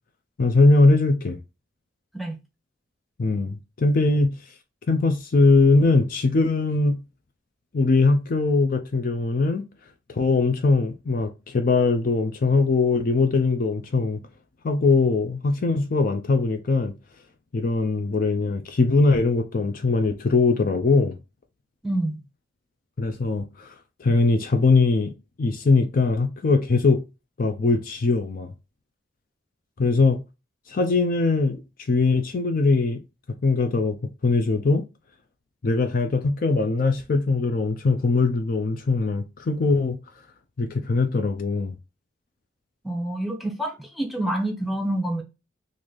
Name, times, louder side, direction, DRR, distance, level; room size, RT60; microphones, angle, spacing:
voice 1, 0.4-1.4 3.2-4.4 4.9-7.0 7.7-9.6 10.1-14.2 14.6-16.9 17.5-21.2 23.0-23.7 24.0-25.1 25.4-27.0 27.4-28.5 29.8-30.2 30.7-31.6 31.9-33.0 33.4-34.0 34.2-34.8 35.6-40.0 40.6-41.8, left 3 dB, 45° left, 0.4 m, -21 dB
voice 2, 21.8-22.2 42.8-45.2, right 1 dB, ahead, 0.8 m, -27 dB
3.8 x 2.6 x 3.1 m
head